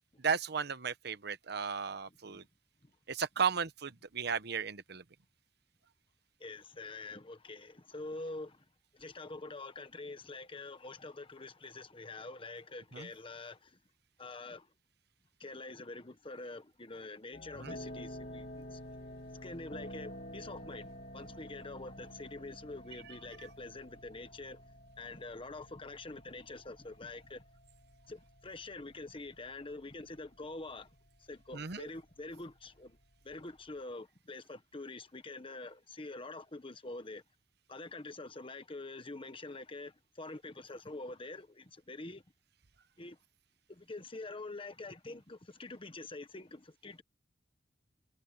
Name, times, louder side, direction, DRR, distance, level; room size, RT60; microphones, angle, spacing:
voice 1, 0.2-2.4 3.1-5.0 12.9-13.1 17.6-17.8 31.5-31.9, right 6 dB, 65° right, 1.0 m, -35 dB
voice 2, 6.4-8.6 8.9-13.8 14.2-14.7 15.4-18.8 19.3-24.6 25.0-27.4 28.1-30.9 31.3-33.0 33.2-37.2 37.7-42.2 43.0-43.2 43.7-47.0, left 2 dB, 30° left, 1.3 m, -46 dB
sound 1, 17.3-33.8, equal, 50° left, 2.7 m, -50 dB
head